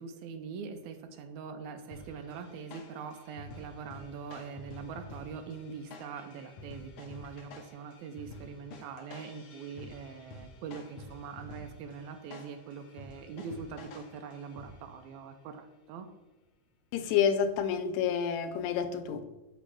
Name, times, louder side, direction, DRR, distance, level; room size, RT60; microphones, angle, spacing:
voice 1, 0.0-16.1, right 6 dB, 80° right, 6 dB, 1.9 m, -43 dB
sound 1, 1.9-15.1, left 3 dB, 65° left, 1.4 m, -50 dB
voice 2, 16.9-19.3, left 7 dB, 90° left, 10 dB, 2.1 m, -29 dB
8.1 x 3.0 x 6.2 m, 1.0 s
omnidirectional pair, 3.3 m